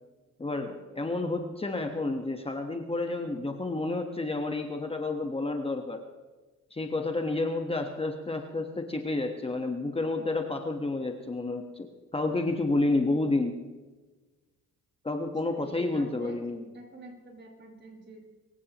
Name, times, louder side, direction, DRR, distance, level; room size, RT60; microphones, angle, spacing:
voice 1, 0.4-6.0 6.7-13.5 15.0-16.6, left 2 dB, 20° left, 4 dB, 1.4 m, -30 dB
voice 2, 15.4-16.4 16.7-18.3, right 1 dB, 35° right, 0 dB, 5.8 m, -47 dB
24.0 x 16.0 x 3.1 m, 1.3 s
cardioid pair, 90°, 30 cm